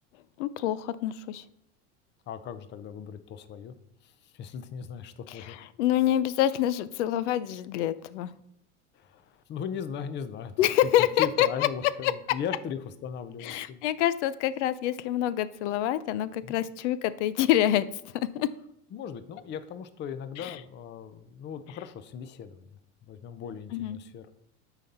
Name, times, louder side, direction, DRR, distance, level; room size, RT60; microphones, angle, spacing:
voice 1, 0.4-1.4 5.3-8.3 10.6-11.7 12.0-12.1 13.4-18.5 20.4-20.6 23.7-24.0, left 12 dB, 85° left, 16 dB, 0.5 m, -27 dB
voice 2, 2.3-3.7 4.0-5.6 8.9-10.5 10.8-10.9 11.2-13.8 16.4-16.6 18.9-22.6 23.1-24.3, left 7 dB, 30° left, 12 dB, 0.6 m, -38 dB
9.0 x 4.0 x 4.2 m, 0.76 s
supercardioid pair, 125°, 35 cm